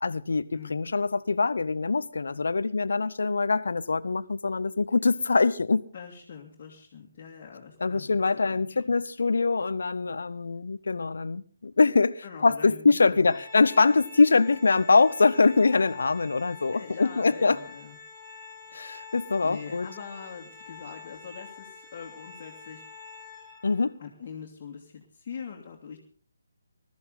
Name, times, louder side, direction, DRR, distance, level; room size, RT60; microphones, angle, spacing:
voice 1, 0.0-5.8 7.8-17.6 18.7-19.9 23.6-24.0, left 4 dB, 60° left, 0.7 m, -23 dB
voice 2, 5.9-8.8 12.2-13.4 16.7-18.0 19.4-22.8 24.0-26.0, left 6 dB, 35° left, 2.3 m, -43 dB
Organ, 13.3-24.0, left 4 dB, 10° right, 5.0 m, -47 dB
21.0 x 13.5 x 4.0 m
figure-of-eight pair, 145°, 0 cm